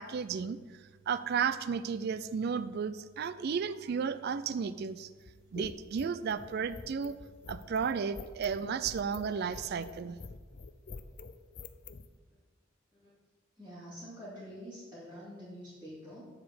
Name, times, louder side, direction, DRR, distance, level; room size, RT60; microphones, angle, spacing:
voice 1, 0.0-5.1 5.5-7.2 7.5-10.2, right 6 dB, 50° right, 14 dB, 0.4 m, -33 dB
sound 1, 5.2-12.1, left 4 dB, 45° left, 0.5 m, -46 dB
voice 2, 13.6-16.3, equal, 5° right, -14 dB, 2.8 m, -46 dB
8.6 x 4.9 x 7.2 m, 1.4 s
head